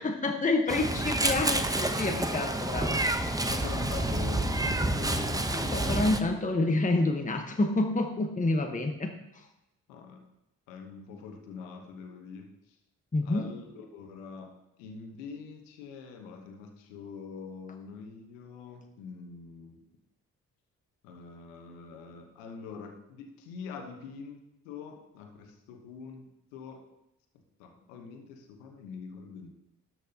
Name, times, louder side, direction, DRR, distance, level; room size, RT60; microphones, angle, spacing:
voice 1, 0.0-3.0 5.5-9.1 13.1-13.5, left 2 dB, 20° left, 3 dB, 1.1 m, -28 dB
Meow, 0.7-6.2, right 1 dB, 10° right, 0.8 m, -29 dB
voice 2, 3.4-6.4 9.9-10.2 10.7-12.8 13.2-14.5 14.8-19.8 21.0-24.4 24.6-26.8 27.6-29.5, left 5 dB, 90° left, 4 dB, 1.1 m, -44 dB
12.5 x 5.9 x 2.9 m, 0.92 s
hypercardioid pair, 45°, 39 cm